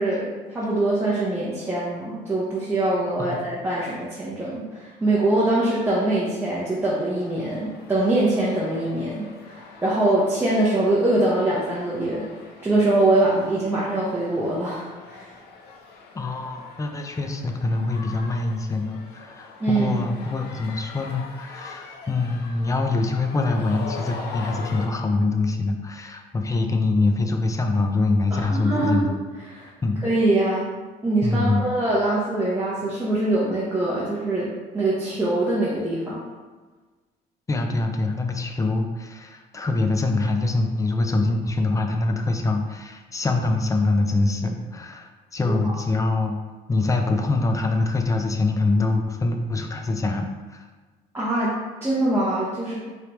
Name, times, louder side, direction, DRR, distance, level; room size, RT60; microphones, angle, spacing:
voice 1, 0.0-12.3 12.6-15.3 19.6-20.0 28.3-29.2 29.5-29.7 30.0-30.7 31.0-36.2 45.4-45.7 51.1-51.5 51.8-52.8, right 2 dB, 15° right, -8 dB, 0.9 m, -23 dB
sound 1, 7.1-24.9, left 4 dB, 70° left, 0.6 m, -42 dB
voice 2, 16.2-29.1 29.8-30.0 31.2-31.6 37.5-46.4 46.7-50.3, left 3 dB, 20° left, 4 dB, 0.5 m, -24 dB
4.6 x 3.3 x 3.0 m, 1.3 s
cardioid pair, 110°, 17 cm